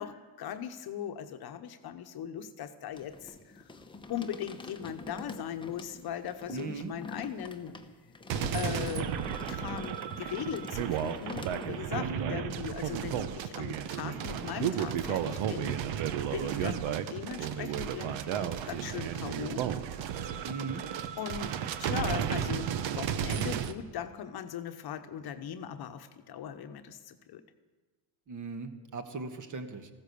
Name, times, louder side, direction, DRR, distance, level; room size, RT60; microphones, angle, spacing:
voice 1, 0.0-3.7 4.1-7.7 8.5-19.6 20.3-20.5 21.2-21.5 21.8-27.4, left 9 dB, 50° left, 8 dB, 1.1 m, -39 dB
sound 1, 2.9-11.8, left 3 dB, 10° left, 0.9 m, -45 dB
voice 2, 6.5-6.9 12.0-12.4 16.4-16.7 20.4-20.8 28.3-29.9, right 4 dB, 40° right, 7 dB, 1.5 m, -38 dB
sound 2, 8.3-23.7, right 9 dB, 65° right, 1.1 m, -33 dB
Thunder, 14.1-22.2 24.9-25.2, right 2 dB, 85° right, 7.1 m, -51 dB
15.0 x 13.5 x 6.9 m, 1.3 s
cardioid pair, 135°, 48 cm